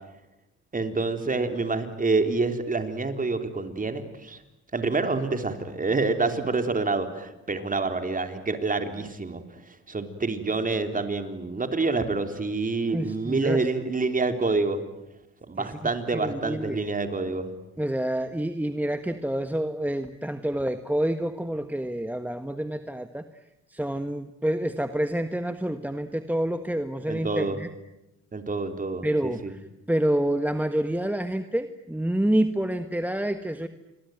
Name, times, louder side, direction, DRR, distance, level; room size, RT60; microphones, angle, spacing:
voice 1, 0.7-4.4 4.7-9.4 9.7-14.8 15.5-17.5 27.1-27.6 28.3-29.5, right 3 dB, 25° right, 7 dB, 3.8 m, -27 dB
voice 2, 12.9-13.7 15.6-16.8 17.8-23.2 23.7-27.7 29.0-33.7, right 1 dB, 5° right, 9 dB, 1.4 m, -28 dB
28.0 x 23.0 x 9.3 m, 0.90 s
cardioid pair, 90°, 30 cm